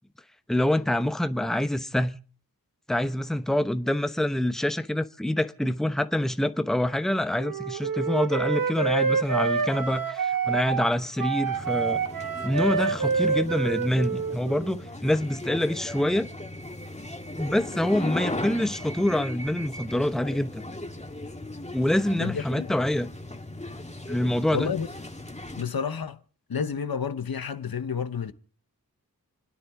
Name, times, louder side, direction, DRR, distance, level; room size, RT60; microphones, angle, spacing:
voice 1, 0.5-2.2 2.9-12.0 12.4-16.3 17.4-20.6 21.7-23.1 24.1-24.7, left 1 dB, ahead, 0.9 m, -26 dB
Wind instrument woodwind instrument, 7.4-14.8, right 5 dB, 65° right, 1.2 m, -27 dB
sound 1, 11.5-25.6, left 1 dB, 20° left, 2.0 m, -37 dB
voice 2, 22.2-22.7 24.5-24.9 25.6-26.2 26.5-28.3, left 6 dB, 75° left, 1.1 m, -30 dB
29.5 x 9.9 x 3.6 m
wide cardioid pair, 60°, 36 cm